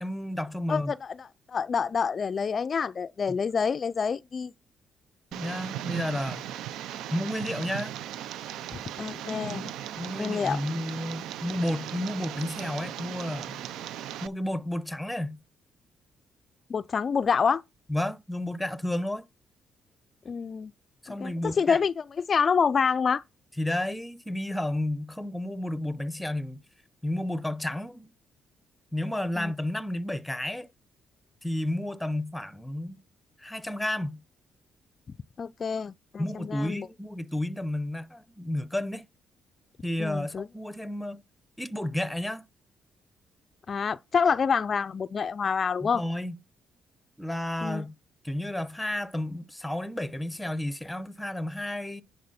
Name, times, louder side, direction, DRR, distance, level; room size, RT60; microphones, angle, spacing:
voice 1, 0.0-0.9 3.3-3.4 5.3-6.4 7.1-7.9 10.0-13.6 14.2-15.4 17.9-19.2 21.0-21.8 23.6-26.6 27.0-28.1 28.9-30.7 31.4-33.0 33.4-34.2 36.2-39.1 39.8-41.2 41.6-42.4 45.8-46.3 47.2-47.9 48.2-52.0, left 1 dB, 5° left, 0.7 m, -31 dB
voice 2, 0.7-4.5 8.7-9.7 10.2-10.6 16.7-17.6 20.3-20.7 21.1-23.2 29.4-29.5 35.4-36.9 40.0-40.5 43.7-46.0 47.6-47.8, left 6 dB, 45° left, 0.3 m, -27 dB
Tick, 5.3-14.3, right 11 dB, 85° right, 0.4 m, -37 dB
10.0 x 4.1 x 4.1 m
cardioid pair, 90°, 0 cm